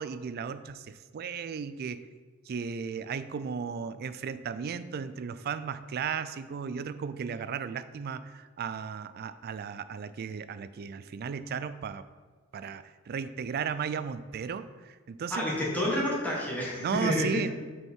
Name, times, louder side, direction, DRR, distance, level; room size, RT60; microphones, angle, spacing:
voice 1, 0.0-2.1 2.5-12.0 12.5-15.4 16.8-17.5, right 6 dB, 50° right, 13 dB, 0.3 m, -35 dB
voice 2, 15.3-17.4, left 1 dB, 10° left, -5 dB, 1.6 m, -29 dB
6.3 x 4.6 x 4.6 m, 1.4 s
head